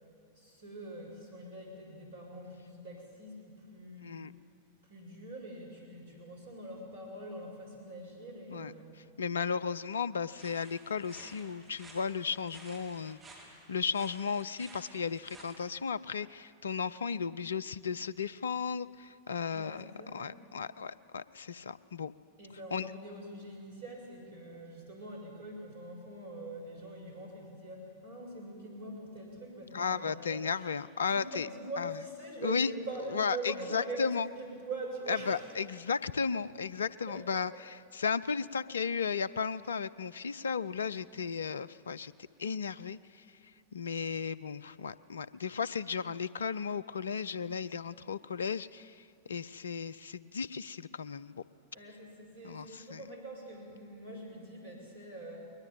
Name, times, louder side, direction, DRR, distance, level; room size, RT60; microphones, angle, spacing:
voice 1, 0.3-4.3 4.8-8.9 19.5-20.4 22.4-30.7 31.0-35.6 36.4-36.5 37.1-37.4 51.7-55.5, right 2 dB, 65° right, 1 dB, 6.7 m, -44 dB
voice 2, 9.2-13.2 13.7-19.8 20.1-22.1 22.7-22.9 29.7-31.5 31.8-31.9 32.4-32.7 33.1-34.3 35.1-42.1 42.4-43.2 43.7-51.3 52.4-53.0, left 6 dB, 70° left, 18 dB, 0.5 m, -35 dB
sound 1, 10.3-15.6, right 2 dB, 20° right, 4.8 m, -54 dB
21.0 x 19.5 x 9.0 m, 2.4 s
figure-of-eight pair, 90°, 0 cm